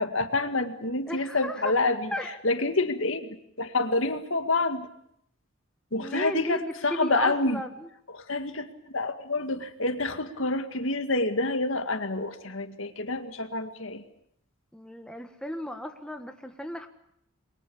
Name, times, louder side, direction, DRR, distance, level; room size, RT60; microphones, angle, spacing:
voice 1, 0.0-2.1 2.4-3.3 3.6-4.9 5.9-7.6 8.1-14.0, left 2 dB, 70° left, 7 dB, 2.1 m, -28 dB
voice 2, 1.1-1.7 2.1-2.3 6.0-7.9 14.7-16.9, equal, 5° left, 5 dB, 1.4 m, -35 dB
27.5 x 22.5 x 7.2 m, 0.72 s
head